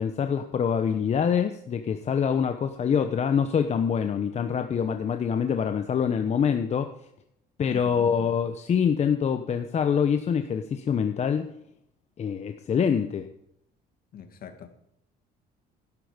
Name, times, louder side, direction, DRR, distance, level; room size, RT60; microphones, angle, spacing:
voice 1, 0.0-6.9 7.6-11.5 12.2-13.2, left 7 dB, 40° left, 1.0 m, -25 dB
voice 2, 7.7-8.1 14.1-14.7, left 8 dB, 60° left, 2.2 m, -42 dB
12.0 x 12.0 x 5.1 m
cardioid pair, 110°, 17 cm